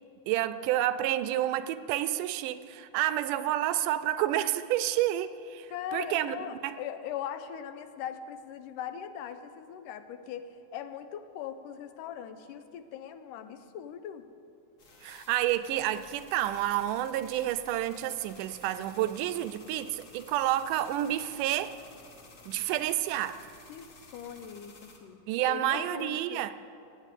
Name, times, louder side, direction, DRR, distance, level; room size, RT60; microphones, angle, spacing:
voice 1, 0.3-6.4 6.6-6.8 15.0-21.8 22.5-23.4 25.3-26.5, right 13 dB, 80° right, 13 dB, 2.1 m, -29 dB
voice 2, 5.7-14.3 23.7-26.4, left 9 dB, 85° left, 10 dB, 2.3 m, -40 dB
sound 1, 14.8-25.0, left 2 dB, 45° left, 1.0 m, -53 dB
17.5 x 8.5 x 8.2 m, 2.5 s
omnidirectional pair, 3.7 m